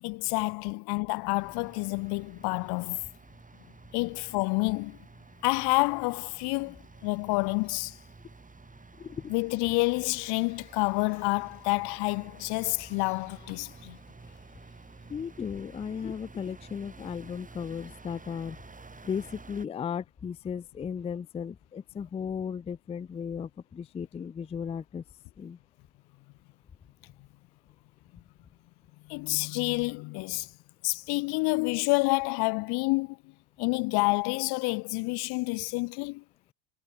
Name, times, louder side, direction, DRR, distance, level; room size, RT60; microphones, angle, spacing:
voice 1, 0.0-3.0 3.9-5.0 5.4-8.0 9.3-14.0 29.1-30.5 30.8-33.2 33.6-36.2, left 27 dB, 60° left, 0.6 m, -28 dB
sound 1, 1.4-19.7, right 3 dB, 20° right, 4.7 m, -51 dB
voice 2, 9.0-9.3 15.1-18.6 19.0-25.0 25.4-25.6, left 7 dB, 15° left, 0.4 m, -35 dB
sound 2, 9.7-16.2, left 8 dB, 40° left, 5.1 m, -64 dB
hypercardioid pair, 75°, 44 cm